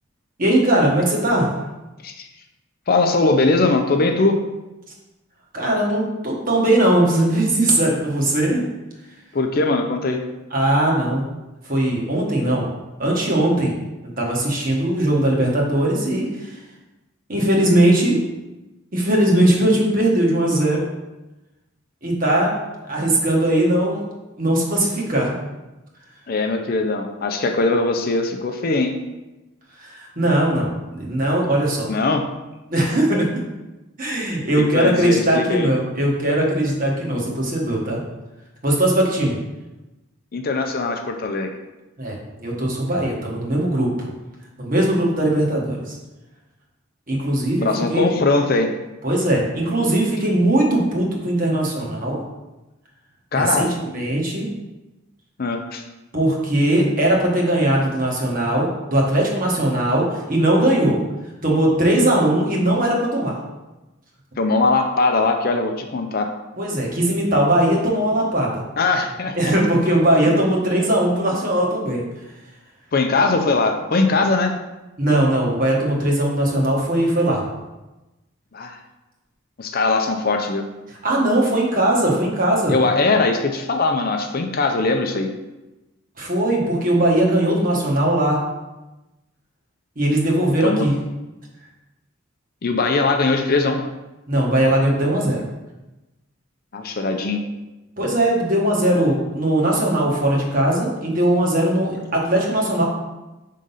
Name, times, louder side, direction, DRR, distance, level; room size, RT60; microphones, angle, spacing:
voice 1, 0.4-1.5 5.5-8.6 10.5-11.3 11.6-12.7 13.0-13.7 14.2-16.6 17.3-18.2 18.9-20.8 22.0-22.5 22.9-24.0 24.4-25.3 29.8-31.9 32.7-33.4 34.0-38.0 38.6-39.4 42.0-44.1 44.6-46.0 47.1-48.1 49.0-52.2 53.3-54.5 56.1-61.0 61.4-63.4 66.6-68.6 69.3-72.0 75.0-77.4 81.0-82.7 86.2-88.4 90.0-90.9 94.3-95.4 98.0-102.8, right 1 dB, 40° right, -2 dB, 1.4 m, -19 dB
voice 2, 2.9-4.4 9.3-10.2 26.3-28.9 31.9-32.2 34.6-35.7 40.3-41.5 47.6-48.7 53.3-53.7 55.4-55.8 64.4-66.3 68.8-69.5 70.3-70.4 72.9-74.5 78.5-78.8 79.6-80.6 82.7-85.3 90.6-90.9 92.6-93.8 96.7-97.4, left 3 dB, 45° left, 5 dB, 0.5 m, -20 dB
5.2 x 3.7 x 5.5 m, 1.0 s
head